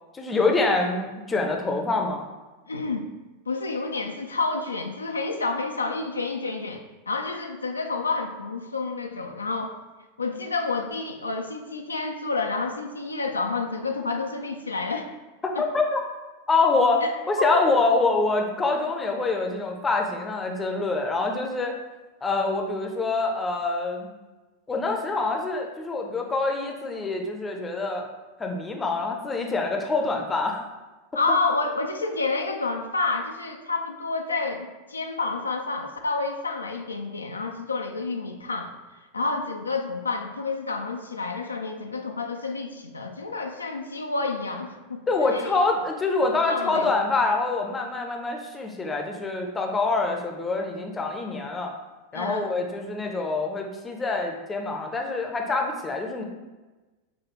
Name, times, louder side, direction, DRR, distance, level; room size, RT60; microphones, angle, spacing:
voice 1, 0.1-2.3 15.6-16.0 16.5-21.7 22.2-24.1 24.7-28.1 28.4-30.7 45.1-51.7 52.1-56.2, left 3 dB, 15° left, 2 dB, 0.5 m, -25 dB
voice 2, 2.7-3.1 3.5-9.8 10.2-15.1 15.6-15.7 17.0-17.1 17.4-17.6 31.1-38.7 39.1-45.0 45.3-45.6 46.5-46.9 52.1-52.5, left 3 dB, 75° left, 3 dB, 0.3 m, -29 dB
6.0 x 2.3 x 3.0 m, 1.2 s
figure-of-eight pair, 90°, 0 cm